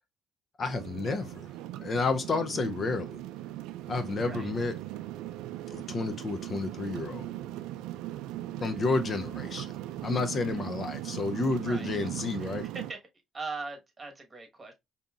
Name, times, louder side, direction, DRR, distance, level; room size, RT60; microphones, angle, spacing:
voice 1, 0.6-1.5 1.8-3.2 3.9-4.8 5.7-7.3 8.6-9.7 10.0-12.7, left 3 dB, 40° left, 0.5 m, -30 dB
sound 1, 0.6-12.9, right 14 dB, 85° right, 0.3 m, -39 dB
voice 2, 13.3-14.7, right 4 dB, 25° right, 1.2 m, -39 dB
5.0 x 2.7 x 2.4 m
cardioid pair, 90°, 0 cm